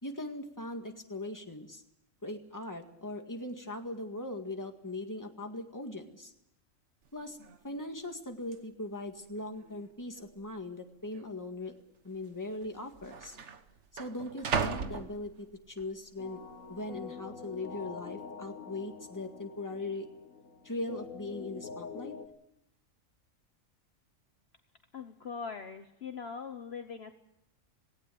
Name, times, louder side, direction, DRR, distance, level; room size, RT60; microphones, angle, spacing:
voice 1, 0.0-1.8 2.2-6.3 7.1-7.4 7.6-11.7 12.0-13.4 13.9-16.4 16.7-20.1 20.6-22.1, left 2 dB, 15° left, 4 dB, 1.9 m, -40 dB
sound 1, 7.1-7.2 7.4-7.8 8.5-8.6 9.4-9.9 10.1-10.3 11.1-11.3 12.3-12.4 12.6-15.8 16.3-16.7, right 5 dB, 60° right, 1.5 m, -37 dB
sound 2, 16.2-22.3, left 6 dB, 75° left, 2.0 m, -45 dB
voice 2, 24.9-27.1, left 5 dB, 50° left, 7 dB, 1.2 m, -41 dB
18.5 x 18.0 x 8.6 m, 0.81 s
omnidirectional pair, 1.4 m